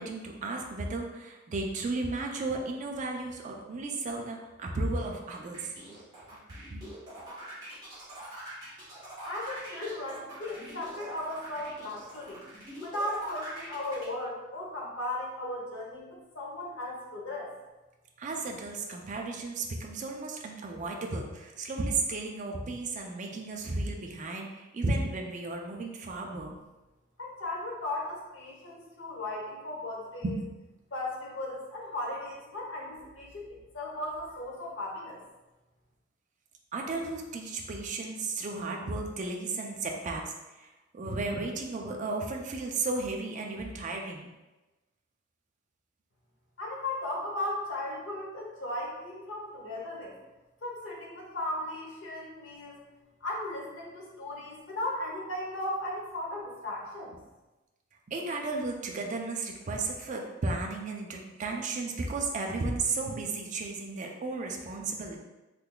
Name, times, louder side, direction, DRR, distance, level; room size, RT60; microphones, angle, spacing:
voice 1, 0.0-6.0 6.7-6.8 18.2-26.6 30.2-30.5 36.7-44.3 58.1-65.2, right 3 dB, 40° right, 1 dB, 0.4 m, -34 dB
sound 1, 4.9-14.0, right 1 dB, 20° right, 1.3 m, -44 dB
voice 2, 9.2-12.4 12.8-17.5 27.2-30.4 30.9-35.2 46.6-50.2 50.6-52.8 53.2-57.1, left 1 dB, 70° left, -2 dB, 0.9 m, -36 dB
3.7 x 3.3 x 2.2 m, 1.1 s
head